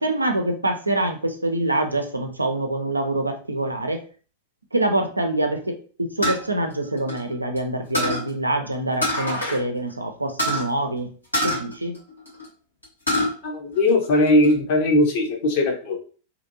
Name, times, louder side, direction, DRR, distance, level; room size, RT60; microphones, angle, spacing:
voice 1, 0.0-4.0 4.7-11.1 11.4-12.0, right 1 dB, 85° right, 5 dB, 0.4 m, -25 dB
sound 1, 6.2-7.6 7.9-8.3 9.0-9.6 9.9-10.0 10.4-10.7 11.3-12.5 12.8-13.3 13.8-14.5, equal, 85° left, 1.2 m, -25 dB
voice 2, 13.4-16.1, left 1 dB, 50° left, 2 dB, 0.8 m, -19 dB
2.8 x 2.5 x 2.6 m, 0.39 s
figure-of-eight pair, 90°, 0 cm